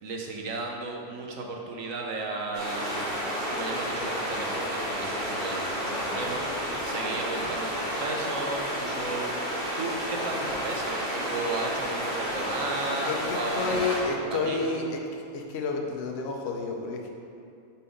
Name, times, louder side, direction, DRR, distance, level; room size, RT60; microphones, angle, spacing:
voice 1, 0.0-6.4 6.8-9.3 9.8-14.8, right 3 dB, 75° right, 0 dB, 1.1 m, -34 dB
sound 1, 2.5-14.0, equal, 40° right, 1.8 m, -31 dB
voice 2, 13.1-15.0 15.3-17.1, left 3 dB, 55° left, 1 dB, 0.9 m, -30 dB
5.6 x 4.2 x 5.0 m, 2.5 s
omnidirectional pair, 1.4 m